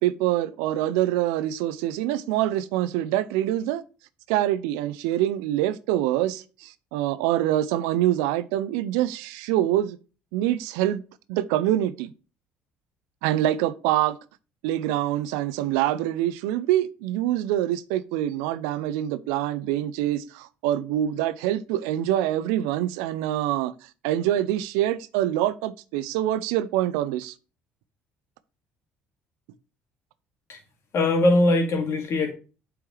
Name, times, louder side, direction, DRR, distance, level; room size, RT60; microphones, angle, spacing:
voice 1, 0.0-3.8 4.3-10.0 10.3-11.0 11.3-12.1 13.2-14.2 14.6-23.7 24.0-27.3, right 13 dB, 80° right, 0.5 m, -25 dB
voice 2, 30.9-32.3, left 2 dB, 55° left, 2.2 m, -21 dB
7.8 x 4.6 x 3.2 m
hypercardioid pair, 60°, 6 cm